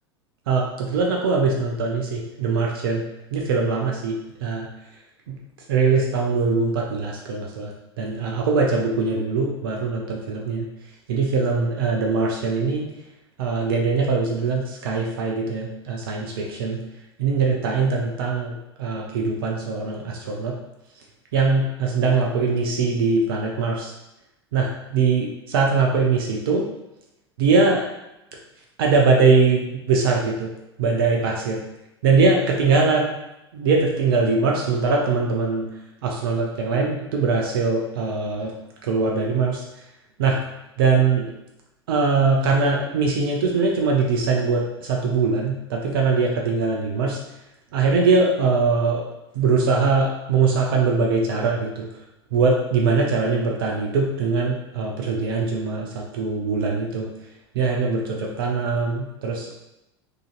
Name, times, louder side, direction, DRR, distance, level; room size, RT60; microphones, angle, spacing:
voice 1, 0.5-3.0 3.3-4.7 5.3-5.4 5.7-7.7 8.0-10.7 11.1-12.9 13.4-16.8 17.2-20.6 21.3-23.9 24.5-26.6 27.4-27.9 28.8-30.5 30.8-31.6 32.0-33.2 33.5-35.7 36.0-38.5 38.8-39.6 40.2-40.4 40.8-41.3 41.9-47.2 47.7-49.0 49.3-51.9 52.3-57.1 57.5-59.6, right 4 dB, 55° right, 0 dB, 0.5 m, -22 dB
3.8 x 2.6 x 2.4 m, 0.90 s
figure-of-eight pair, 80°, 14 cm